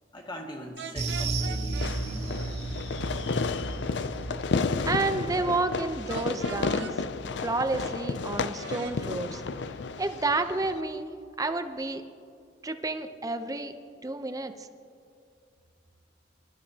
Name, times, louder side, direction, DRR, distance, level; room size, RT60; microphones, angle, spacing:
voice 1, 0.1-2.7, equal, 25° left, 0 dB, 2.0 m, -41 dB
sound 1, 0.8-1.9 6.1-6.9 8.6-9.0, right 6 dB, 70° right, 0.8 m, -40 dB
sound 2, 1.0-9.6 9.9-10.1 10.5-10.6, right 3 dB, 40° right, 1.6 m, -36 dB
Fireworks, 1.8-10.8, left 4 dB, 70° left, 0.5 m, -32 dB
voice 2, 4.8-6.9 7.4-9.4 10.0-11.1 11.4-12.0 12.6-13.7 14.0-14.7, right 2 dB, 20° right, 8 dB, 0.7 m, -30 dB
24.5 x 12.5 x 2.9 m, 2.4 s
head